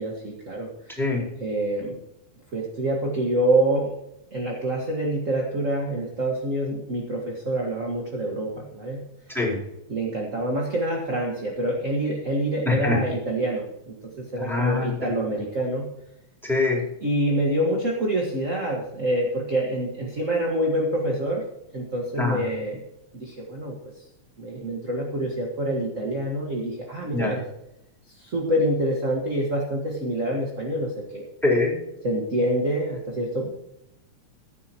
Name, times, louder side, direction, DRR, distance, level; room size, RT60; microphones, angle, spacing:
voice 1, 0.0-1.0 1.4-2.0 2.5-3.9 4.3-9.0 9.9-15.9 17.0-21.4 21.7-22.8 23.1-23.7 24.4-27.4 28.1-31.2 32.0-33.5, right 1 dB, 35° right, -1 dB, 1.3 m, -26 dB
voice 2, 12.6-13.0 14.4-15.1 16.4-16.8 22.2-22.4 27.1-27.3 31.4-31.7, left 3 dB, ahead, -3 dB, 4.2 m, -23 dB
15.5 x 11.5 x 2.9 m, 0.84 s
omnidirectional pair, 3.6 m